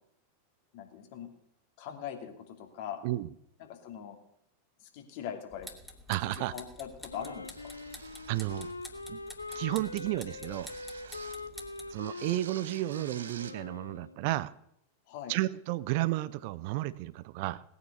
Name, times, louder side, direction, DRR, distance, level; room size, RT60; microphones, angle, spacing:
voice 1, 0.7-1.3 1.8-3.0 3.6-4.2 4.8-5.7 6.2-7.5 15.1-15.3, left 9 dB, 50° left, 4 dB, 2.7 m, -41 dB
sound 1, 5.5-12.0, left 1 dB, 5° left, 2.5 m, -49 dB
voice 2, 6.1-6.5 8.3-8.7 9.1-9.2 9.5-10.7 11.9-14.5 15.3-17.6, right 17 dB, 45° right, 18 dB, 0.5 m, -32 dB
Wind instrument woodwind instrument, 7.1-14.2, left 3 dB, 80° left, 0.6 m, -43 dB
sound 2, 7.5-8.9 9.5-9.8 10.5-11.5 11.9-13.6, right 8 dB, 65° right, 1.2 m, -49 dB
19.0 x 9.4 x 6.8 m, 0.72 s
figure-of-eight pair, 90°, 0 cm